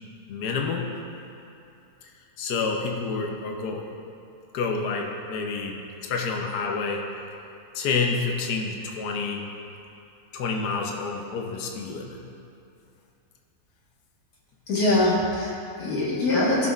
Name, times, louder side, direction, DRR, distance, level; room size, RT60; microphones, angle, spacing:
voice 1, 0.3-0.9 2.4-3.9 4.5-7.0 7.7-9.5 10.3-12.2, left 4 dB, 80° left, 1 dB, 1.3 m, -28 dB
voice 2, 14.7-16.7, left 2 dB, 65° left, -6 dB, 2.0 m, -23 dB
15.0 x 6.1 x 2.4 m, 2.6 s
omnidirectional pair, 1.7 m